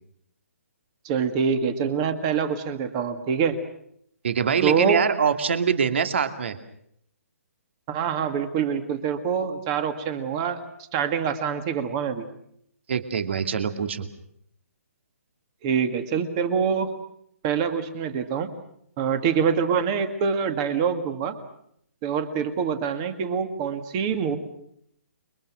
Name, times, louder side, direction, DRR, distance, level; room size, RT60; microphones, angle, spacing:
voice 1, 1.0-3.6 4.6-5.0 7.9-10.6 10.9-12.2 15.6-16.9 17.4-18.5 19.0-21.3 22.0-24.4, right 6 dB, 20° right, 9 dB, 2.0 m, -25 dB
voice 2, 4.2-6.6 12.9-14.1, right 7 dB, 50° right, 8 dB, 2.6 m, -24 dB
30.0 x 23.0 x 6.4 m, 0.71 s
hypercardioid pair, 170°, 8 cm